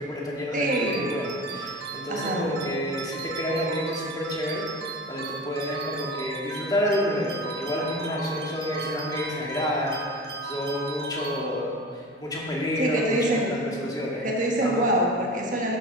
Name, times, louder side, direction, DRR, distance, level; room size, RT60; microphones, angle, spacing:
voice 1, 0.0-14.3 14.6-14.8, left 1 dB, 20° left, -4 dB, 2.2 m, -29 dB
voice 2, 0.5-1.1 2.1-2.5 12.8-13.6 14.2-15.8, right 1 dB, 45° right, -1 dB, 1.6 m, -25 dB
sound 1, 0.7-11.9, right 4 dB, 75° right, 1.3 m, -36 dB
12.0 x 7.6 x 5.6 m, 2.3 s
head